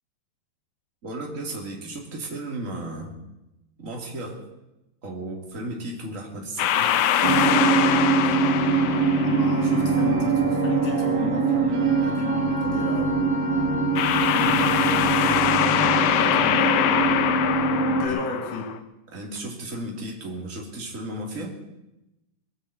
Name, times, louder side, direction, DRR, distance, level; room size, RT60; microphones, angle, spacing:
voice 1, 1.0-3.2 3.8-4.4 5.0-6.9 8.2-8.3 18.0-18.2 19.1-21.6, right 1 dB, 25° right, 0 dB, 2.6 m, -34 dB
sound 1, 6.6-9.9 14.0-18.8, left 10 dB, 85° left, 2.6 m, -23 dB
sound 2, 7.2-18.1, right 4 dB, 80° right, 3.1 m, -23 dB
voice 2, 9.2-13.2 13.5-13.9 14.3-15.6 16.1-16.9 17.8-18.7, left 4 dB, 65° left, 1 dB, 4.0 m, -33 dB
21.0 x 8.0 x 8.1 m, 0.94 s
omnidirectional pair, 4.1 m